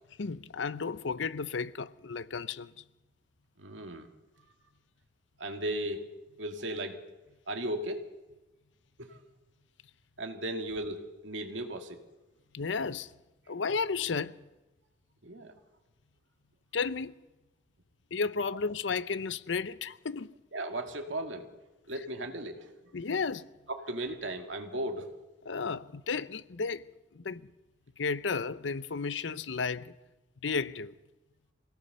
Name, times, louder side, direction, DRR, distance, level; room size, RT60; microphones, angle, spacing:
voice 1, 0.2-2.8 12.5-13.1 13.5-14.4 16.7-17.2 18.1-20.3 22.9-23.5 25.5-26.9 27.1-27.5 28.0-29.9 30.4-30.9, left 5 dB, 80° left, 0.7 m, -33 dB
voice 2, 3.6-4.1 5.4-6.1 6.4-7.0 7.5-8.1 9.0-9.2 10.2-12.0 15.2-15.5 20.5-21.5 21.9-22.9 23.7-25.1, right 1 dB, 85° right, 2.2 m, -36 dB
24.0 x 17.5 x 6.8 m
head